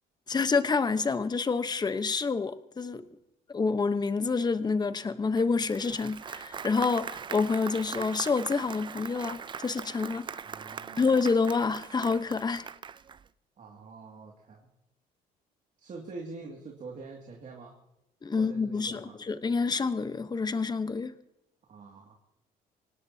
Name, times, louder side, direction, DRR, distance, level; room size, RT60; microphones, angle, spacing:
voice 1, 0.3-3.0 3.5-10.3 11.0-12.7 18.2-21.1, left 4 dB, 25° left, 1.0 m, -28 dB
Applause, 5.4-13.3, right 7 dB, 30° right, 0.5 m, -41 dB
voice 2, 10.4-11.1 13.6-14.7 15.8-17.8 18.3-19.2 21.7-22.1, right 4 dB, 45° right, 2.4 m, -45 dB
25.0 x 18.5 x 2.8 m
cardioid pair, 110°, 17 cm